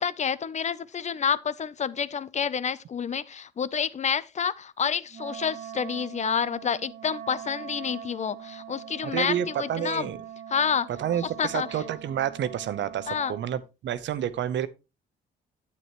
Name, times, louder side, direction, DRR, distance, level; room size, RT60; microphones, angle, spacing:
voice 1, 0.0-10.1 10.5-10.9 11.4-11.7 13.1-13.3, left 7 dB, 35° left, 0.6 m, -28 dB
Wind instrument woodwind instrument, 5.1-13.5, right 9 dB, 40° right, 0.8 m, -42 dB
voice 2, 9.0-10.2 11.0-14.7, right 10 dB, 65° right, 0.8 m, -29 dB
9.5 x 8.3 x 3.0 m
cardioid pair, 90°, 20 cm